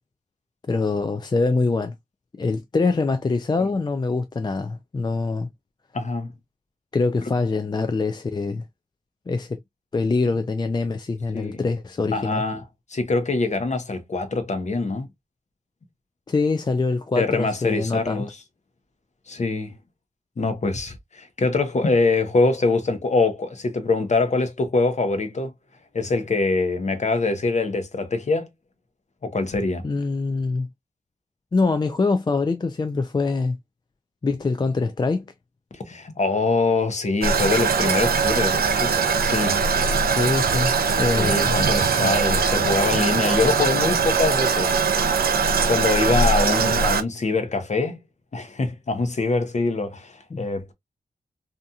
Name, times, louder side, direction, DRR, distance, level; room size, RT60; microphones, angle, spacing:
voice 1, 0.7-1.9 2.4-5.5 6.9-8.6 9.3-9.6 9.9-12.4 16.3-18.3 29.8-30.7 31.5-33.6 34.2-35.3 40.2-41.6 50.3-50.5, left 3 dB, 25° left, 0.4 m, -24 dB
voice 2, 5.9-6.3 11.3-11.6 12.1-12.6 12.9-15.1 17.2-18.3 19.3-19.7 20.4-25.5 25.9-28.5 29.2-29.8 35.7-39.6 41.1-44.9 45.7-48.0 48.3-50.7, left 3 dB, 45° left, 0.8 m, -24 dB
Toilet flush, 37.2-47.0, right 5 dB, 75° right, 0.5 m, -21 dB
2.8 x 2.5 x 2.3 m
cardioid pair, 50°, 16 cm